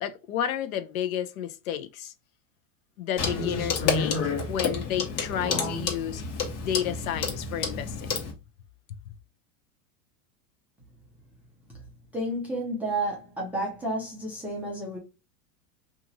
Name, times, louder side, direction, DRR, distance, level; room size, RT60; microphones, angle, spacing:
voice 1, 0.0-2.1 3.0-6.2 6.6-8.1, left 10 dB, 60° left, 0.5 m, -31 dB
Clock, 3.2-8.3, left 4 dB, 45° left, 1.0 m, -29 dB
voice 2, 12.1-15.0, right 1 dB, 5° right, 0.4 m, -31 dB
2.8 x 2.5 x 2.5 m
supercardioid pair, 130°, 47 cm